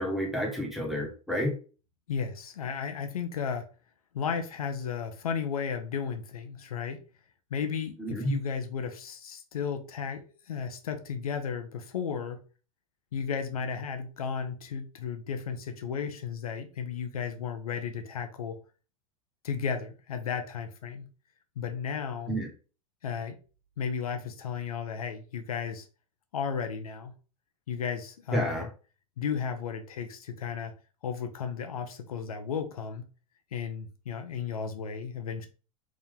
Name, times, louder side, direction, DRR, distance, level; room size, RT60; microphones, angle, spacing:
voice 1, 0.0-1.5 8.0-8.3 22.3-22.5 28.3-28.7, equal, ahead, 1.3 m, -30 dB
voice 2, 2.1-3.7 4.1-7.0 7.5-12.4 13.1-18.6 19.4-21.1 21.6-22.3 23.0-23.4 23.8-25.9 26.3-27.1 27.7-28.7 29.2-30.7 31.0-33.1 33.5-35.5, left 6 dB, 90° left, 0.7 m, -34 dB
3.7 x 2.7 x 3.5 m
hypercardioid pair, 110°, 18 cm